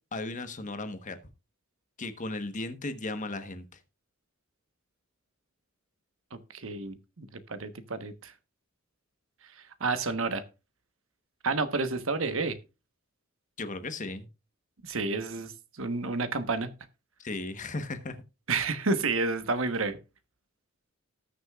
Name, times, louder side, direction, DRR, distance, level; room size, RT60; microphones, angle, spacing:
voice 1, 0.1-1.2 2.0-3.8 13.6-14.3 17.2-18.2, left 2 dB, 40° left, 1.2 m, -36 dB
voice 2, 6.3-8.3 9.6-10.4 11.4-12.6 14.8-16.7 18.5-20.0, right 3 dB, 70° right, 1.2 m, -30 dB
19.0 x 6.6 x 2.4 m
head